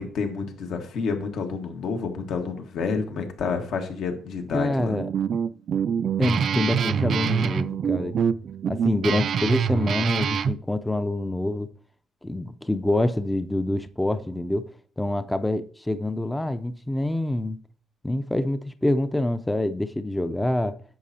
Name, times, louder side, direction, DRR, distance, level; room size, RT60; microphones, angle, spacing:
voice 1, 0.0-5.0, left 5 dB, 75° left, 1.4 m, -29 dB
voice 2, 4.5-5.1 6.2-8.3 8.7-11.7 12.2-17.6 18.0-20.8, left 1 dB, 10° left, 0.5 m, -26 dB
Guitar, 4.8-10.6, right 7 dB, 60° right, 0.3 m, -25 dB
10.5 x 7.4 x 2.7 m
cardioid pair, 90°, 0 cm